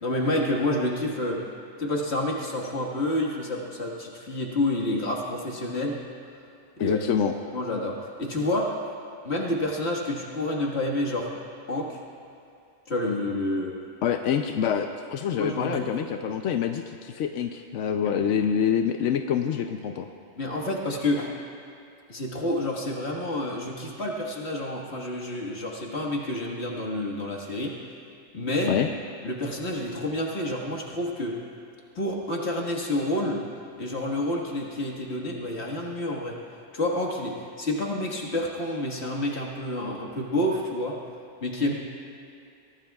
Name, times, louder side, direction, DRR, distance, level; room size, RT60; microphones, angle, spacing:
voice 1, 0.0-1.4 1.8-6.0 6.8-7.0 7.5-8.8 9.2-11.3 11.7-12.0 12.9-13.7 15.4-15.9 20.4-21.3 22.1-27.8 28.3-28.7 29.2-31.4 32.0-33.4 33.8-36.4 36.7-41.0 41.4-41.7, left 1 dB, 65° left, -2 dB, 2.0 m, -29 dB
voice 2, 6.8-7.3 14.0-20.1 28.7-28.9, left 8 dB, 85° left, 5 dB, 1.0 m, -26 dB
23.0 x 17.5 x 2.4 m, 2.6 s
omnidirectional pair, 1.2 m